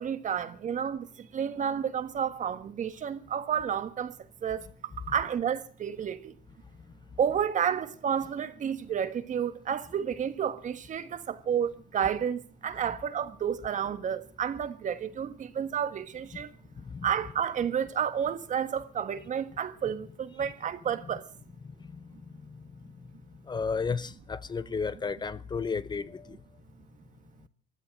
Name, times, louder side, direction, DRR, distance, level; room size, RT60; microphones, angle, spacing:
voice 1, 0.0-4.1 4.4-6.3 7.2-16.5 17.0-21.3, right 8 dB, 45° right, 1.5 m, -31 dB
voice 2, 23.5-26.4, left 5 dB, 25° left, 0.7 m, -33 dB
15.5 x 12.0 x 7.7 m
cardioid pair, 110°, 17 cm